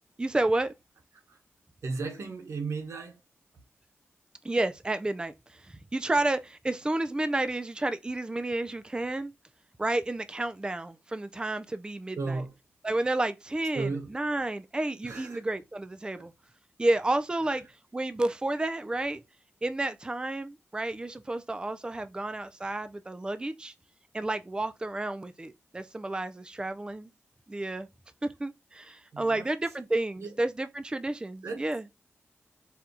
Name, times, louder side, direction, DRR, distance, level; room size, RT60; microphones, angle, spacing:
voice 1, 0.2-0.7 4.4-9.3 9.8-12.4 12.8-16.3 16.8-17.7 17.9-19.2 19.6-23.7 24.1-27.1 27.5-27.9 28.2-31.8, right 2 dB, 20° right, 0.4 m, -31 dB
voice 2, 1.8-3.2 12.1-12.5 13.7-14.2 15.0-15.4 16.2-16.3 29.1-29.5 30.2-30.4 31.4-31.7, right 4 dB, 85° right, 0.9 m, -35 dB
4.2 x 2.3 x 3.8 m
cardioid pair, 70°, 5 cm